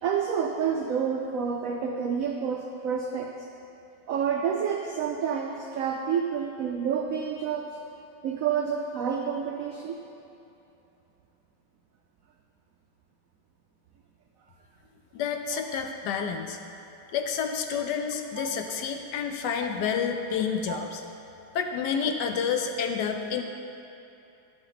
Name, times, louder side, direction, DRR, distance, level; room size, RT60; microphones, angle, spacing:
voice 1, 0.0-3.3 4.1-7.7 8.2-10.0 18.4-18.5 20.7-20.8, right 7 dB, 80° right, 2 dB, 0.7 m, -29 dB
voice 2, 15.1-16.6 17.1-21.0 21.5-23.4, left 6 dB, 70° left, 5 dB, 1.1 m, -29 dB
10.5 x 7.5 x 3.9 m, 2.8 s
omnidirectional pair, 2.0 m